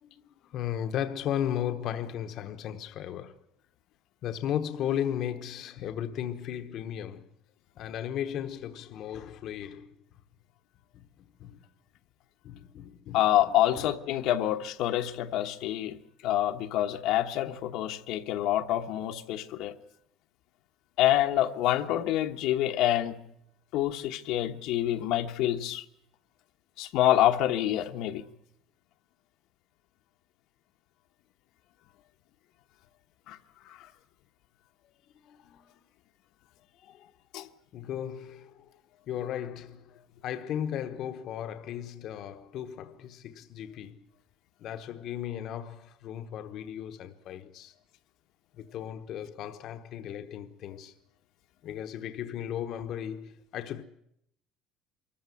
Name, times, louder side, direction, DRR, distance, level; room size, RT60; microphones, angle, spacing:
voice 1, 0.0-3.4 4.2-7.3 7.8-9.9 10.9-11.6 12.4-14.5 35.2-35.8 36.8-37.1 37.7-44.0 44.6-47.7 48.6-50.9 51.6-53.8, left 10 dB, 45° left, 1.1 m, -36 dB
voice 2, 13.1-16.0 16.2-19.7 21.0-23.2 23.7-25.8 26.8-28.2 33.3-33.4 33.6-33.9 37.3-37.5, left 13 dB, 65° left, 1.2 m, -27 dB
24.0 x 14.5 x 9.2 m
cardioid pair, 165°, 0 cm